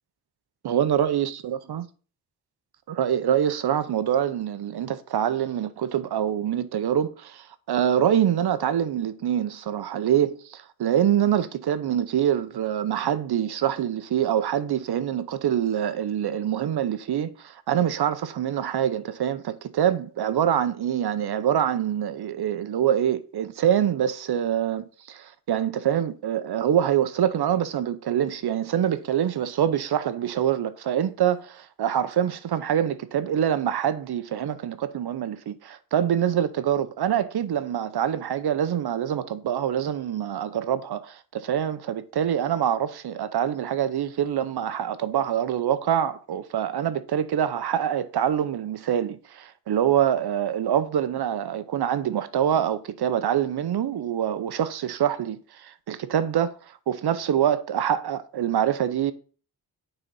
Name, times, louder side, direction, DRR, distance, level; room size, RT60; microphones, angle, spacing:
voice 1, 0.6-1.8 2.9-56.5 56.9-59.1, right 10 dB, 85° right, 0.7 m, -25 dB
9.0 x 4.0 x 5.4 m
wide cardioid pair, 120°, 38 cm